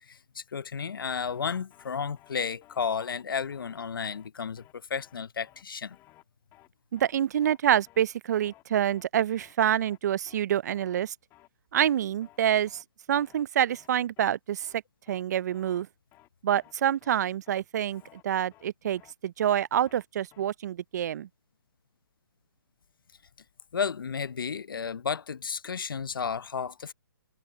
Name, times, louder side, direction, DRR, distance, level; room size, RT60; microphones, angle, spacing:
voice 1, 0.0-6.0 23.7-26.9, left 6 dB, 80° left, 0.8 m, -33 dB
sound 1, 1.3-1.4 1.7-1.9 2.2-2.3 2.6-2.8 3.1-3.2 3.5-3.8 4.1-4.3 4.6-4.7 5.0-5.2 5.5-5.6 5.9-6.2 6.5-6.7 7.0-7.1 7.4-7.6 7.9-8.0 8.3-8.6 8.9-9.1 9.4-9.5 9.8-10.0 10.3-10.4 10.7-11.0 11.3-11.5 11.8-11.9 12.2-12.4 12.7-12.8 13.1-13.4 13.7-13.9 14.2-14.3 14.6-14.8 15.1-15.2 15.5-15.8 16.1-16.3 16.6-16.7 17.0-17.2 17.5-17.6 17.9-18.2 18.5-18.7 19.0-19.1 19.4-19.6 19.9-20.0 20.3-20.5, left 16 dB, 20° left, 2.2 m, -58 dB
voice 2, 6.9-11.1 11.7-12.8 13.1-14.7 15.1-15.9 16.4-21.3, right 10 dB, 50° right, 0.5 m, -27 dB
hypercardioid pair, 145°, 11 cm